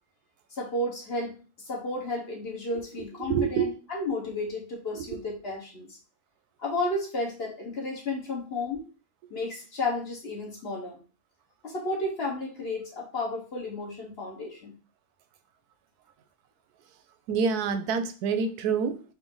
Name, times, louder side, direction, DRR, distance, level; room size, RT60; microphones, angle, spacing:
voice 1, 0.5-6.0 6.6-8.9 9.3-11.0 11.6-14.8, left 2 dB, 45° left, -1 dB, 1.2 m, -32 dB
voice 2, 3.2-3.7 4.9-5.1 17.3-19.0, right 6 dB, 90° right, 10 dB, 1.1 m, -27 dB
4.3 x 2.6 x 3.7 m, 0.35 s
omnidirectional pair, 1.6 m